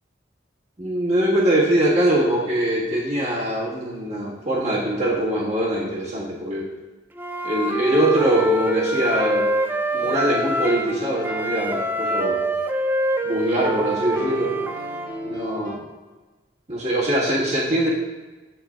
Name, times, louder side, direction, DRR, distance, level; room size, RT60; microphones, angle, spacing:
voice 1, 0.8-6.7 7.4-9.6 9.9-12.4 13.2-14.5 15.2-15.8 16.7-17.9, right 1 dB, 40° right, -7 dB, 1.6 m, -22 dB
Wind instrument woodwind instrument, 7.2-10.9 11.2-15.1, right 1 dB, 10° right, 0.3 m, -25 dB
sound 1, 10.0-13.3 14.1-15.7, left 1 dB, 25° left, 1.9 m, -35 dB
11.0 x 3.9 x 2.4 m, 1.2 s
head